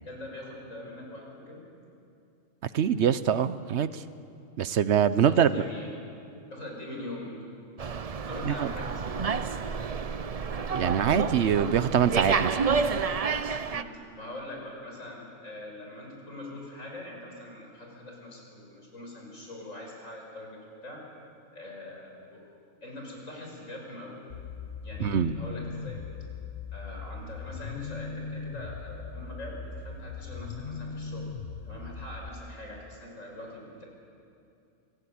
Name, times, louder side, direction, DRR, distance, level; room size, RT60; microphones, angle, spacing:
voice 1, 0.0-1.6 5.2-6.0 6.5-7.3 8.3-9.4 13.6-21.0 21.5-22.4 22.8-24.2 24.8-26.0 26.7-31.3 31.6-33.9, left 1 dB, 85° left, -1 dB, 6.1 m, -43 dB
voice 2, 2.7-4.0 4.6-5.5 8.4-8.7 10.7-12.6 25.0-25.3, right 8 dB, 65° right, 14 dB, 1.0 m, -24 dB
Slam, 7.8-13.8, right 5 dB, 40° right, 0.6 m, -29 dB
sound 1, 24.3-32.3, left 5 dB, 50° left, 1.1 m, -39 dB
27.5 x 17.0 x 8.6 m, 2.6 s
omnidirectional pair, 1.3 m